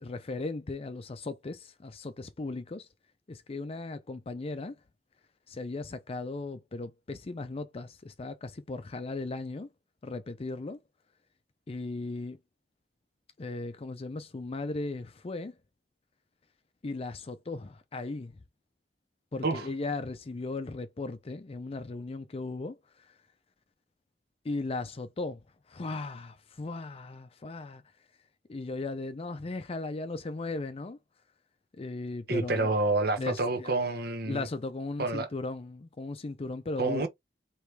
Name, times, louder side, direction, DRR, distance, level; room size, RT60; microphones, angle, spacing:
voice 1, 0.0-2.9 3.3-4.8 5.5-9.7 10.0-10.8 11.7-12.4 13.4-15.6 16.8-18.3 19.3-23.2 24.4-25.4 25.7-27.8 28.5-31.0 31.8-32.7 33.2-33.9 34.3-37.1, left 3 dB, 35° left, 0.4 m, -37 dB
voice 2, 32.3-34.5 35.0-35.3 36.8-37.1, right 2 dB, 60° right, 1.0 m, -28 dB
4.8 x 3.1 x 3.2 m
head